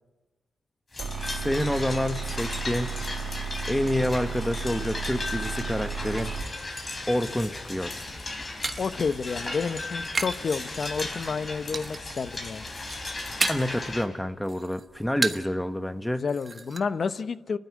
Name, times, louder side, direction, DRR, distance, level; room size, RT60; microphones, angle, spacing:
sound 1, 0.9-14.0, left 2 dB, 35° left, 4.2 m, -36 dB
sound 2, 1.0-6.5, right 5 dB, 75° right, 2.0 m, -34 dB
voice 1, 1.2-2.9 3.7-6.3 7.1-8.0 13.5-16.2, left 1 dB, 5° left, 9 dB, 1.2 m, -28 dB
sound 3, 8.0-10.5 10.8-11.3 11.7-12.2 12.6-13.8 14.2-15.6 15.9-16.0 16.3-16.8, right 3 dB, 35° right, 1.2 m, -33 dB
voice 2, 8.8-12.7 16.1-17.6, left 5 dB, 60° left, 13 dB, 0.9 m, -30 dB
29.5 x 12.0 x 9.4 m, 1.2 s
cardioid pair, 65°, 0 cm